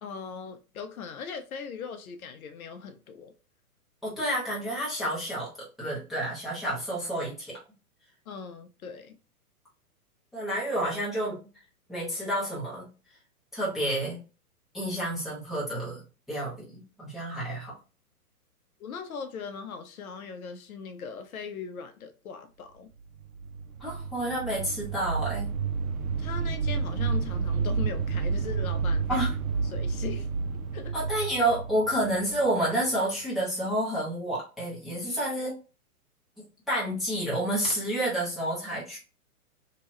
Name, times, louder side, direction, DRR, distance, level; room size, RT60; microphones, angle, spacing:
voice 1, 0.0-3.3 8.3-9.2 18.8-22.9 26.2-29.3 29.6-30.3 30.7-30.9, left 6 dB, 65° left, 0.6 m, -39 dB
voice 2, 4.0-7.6 10.3-11.4 11.9-12.9 13.5-14.2 14.7-16.0 16.3-17.7 23.8-25.5 29.1-29.3 30.9-35.5 36.7-39.0, right 1 dB, ahead, 0.6 m, -29 dB
sound 1, 23.1-33.0, right 5 dB, 65° right, 0.6 m, -30 dB
2.8 x 2.2 x 2.9 m
hypercardioid pair, 120°, 45 cm